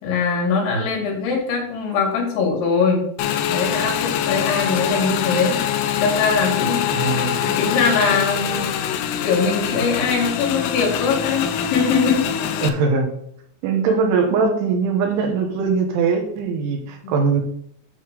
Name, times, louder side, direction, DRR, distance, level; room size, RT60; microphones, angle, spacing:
voice 1, 0.0-3.0 3.5-5.6 6.0-6.8 7.4-8.7 9.2-12.2 13.9-14.0 17.0-17.1, left 5 dB, 75° left, 0 dB, 4.2 m, -21 dB
Motorcycle / Engine, 3.2-12.7, left 9 dB, 90° left, 2.2 m, -24 dB
voice 2, 6.9-7.4 12.6-13.1 13.6-17.4, right 5 dB, 80° right, 3 dB, 3.6 m, -21 dB
9.2 x 3.9 x 6.6 m, 0.67 s
omnidirectional pair, 5.5 m